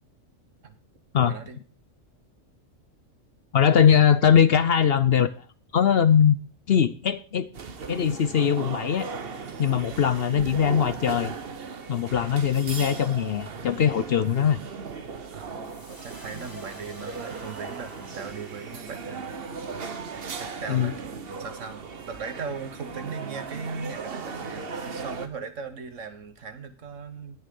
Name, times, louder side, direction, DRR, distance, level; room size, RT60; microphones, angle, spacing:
voice 1, 1.2-1.6 15.3-19.4 20.4-27.4, right 5 dB, 70° right, 9 dB, 1.7 m, -38 dB
voice 2, 3.5-5.3 5.7-6.4 6.7-7.5 7.9-9.1 9.6-11.3 11.9-14.6 20.7-20.9, left 8 dB, 60° left, 14 dB, 0.8 m, -21 dB
sound 1, 7.5-25.3, right 5 dB, 50° right, 1.2 m, -37 dB
sound 2, 15.7-22.0, equal, 15° left, 2.7 m, -50 dB
18.5 x 6.5 x 3.7 m, 0.36 s
omnidirectional pair, 1.4 m